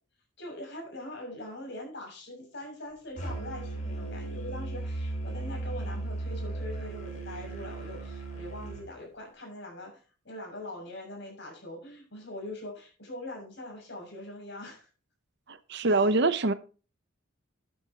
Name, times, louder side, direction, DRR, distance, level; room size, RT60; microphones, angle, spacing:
voice 1, 0.4-14.9 15.8-16.0, left 1 dB, 55° left, 1 dB, 6.9 m, -42 dB
Musical instrument, 3.2-8.8, right 2 dB, 35° left, 4.3 m, -36 dB
voice 2, 15.5-16.5, right 3 dB, 55° right, 13 dB, 0.8 m, -24 dB
12.5 x 10.5 x 3.0 m, 0.35 s
head